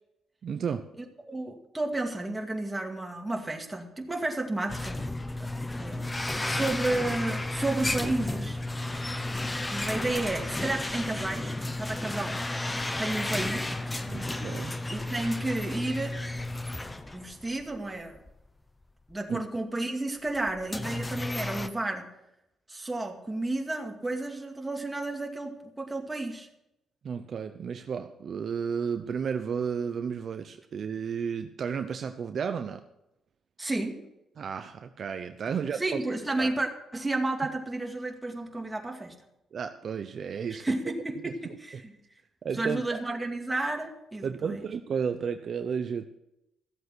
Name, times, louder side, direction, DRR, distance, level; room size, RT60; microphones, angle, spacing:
voice 1, 0.4-0.9 14.1-14.8 19.3-19.4 27.0-32.8 34.4-36.0 36.4-36.5 39.5-40.7 41.2-41.3 41.7-41.8 42.4-43.0 44.2-46.1, right 6 dB, 55° right, 8 dB, 0.8 m, -33 dB
voice 2, 1.0-5.0 5.8-8.6 9.6-12.4 13.0-13.8 14.9-16.2 17.1-18.2 19.1-22.1 22.7-26.5 33.6-34.0 35.5-39.1 40.5-42.0 42.5-44.6, right 2 dB, 15° right, 2 dB, 2.3 m, -32 dB
sound 1, 4.7-17.8 18.1-18.3 19.1-19.2 20.3-21.7, left 2 dB, 15° left, 0.9 m, -33 dB
14.5 x 7.9 x 6.2 m, 0.85 s
cardioid pair, 90°, 0 cm